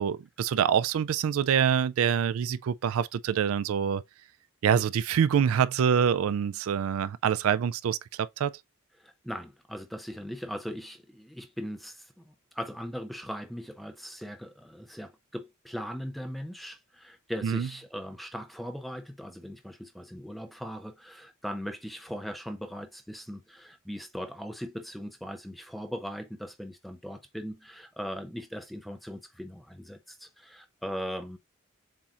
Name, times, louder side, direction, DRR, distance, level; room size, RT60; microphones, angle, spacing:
voice 1, 0.0-4.0 4.6-8.5 17.4-17.7, right 8 dB, 85° right, 0.3 m, -26 dB
voice 2, 9.0-31.4, equal, ahead, 0.4 m, -39 dB
7.2 x 2.8 x 2.5 m
head